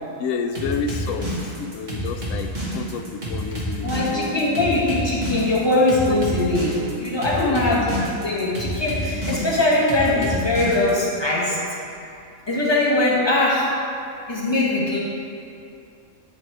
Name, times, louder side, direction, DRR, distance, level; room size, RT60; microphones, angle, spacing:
voice 1, 0.2-1.3 1.6-4.8 7.3-8.1 9.1-9.5, left 5 dB, 80° left, 7 dB, 1.0 m, -30 dB
sound 1, 0.5-11.1, equal, 35° right, 1.6 m, -28 dB
voice 2, 3.8-7.8 8.2-11.6 12.5-13.7 14.3-15.0, left 2 dB, 20° left, -5 dB, 1.4 m, -21 dB
11.0 x 4.1 x 4.7 m, 2.5 s
omnidirectional pair, 1.4 m